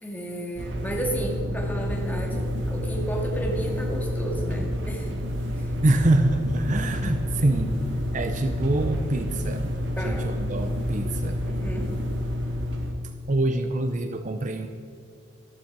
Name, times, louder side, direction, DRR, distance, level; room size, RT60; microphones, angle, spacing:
voice 1, 0.0-5.1 5.5-5.7 10.0-10.3 11.5-11.9, right 1 dB, 10° left, 0 dB, 2.1 m, -32 dB
sound 1, 0.5-12.9, left 1 dB, 65° right, 2.1 m, -29 dB
voice 2, 5.8-7.8 8.1-11.4 13.3-14.7, right 2 dB, 40° right, 7 dB, 0.7 m, -25 dB
14.0 x 13.0 x 4.7 m, 2.4 s
head